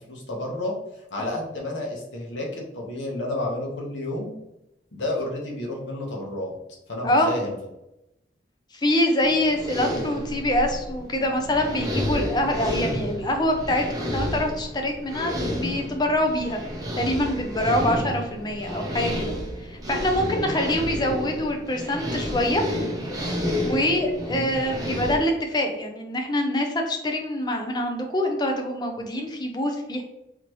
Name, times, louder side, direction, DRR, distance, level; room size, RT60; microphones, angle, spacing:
voice 1, 0.1-0.8 1.1-4.3 4.9-6.5 6.9-7.5 20.3-20.6 24.3-24.6, left 1 dB, 75° left, -1 dB, 1.1 m, -31 dB
voice 2, 7.0-7.4 8.7-16.6 17.0-19.3 19.6-22.6 23.6-30.0, left 1 dB, 20° left, 3 dB, 0.5 m, -25 dB
sound 1, 9.2-25.2, equal, 20° right, 0.7 m, -30 dB
4.0 x 3.1 x 2.9 m, 0.88 s
head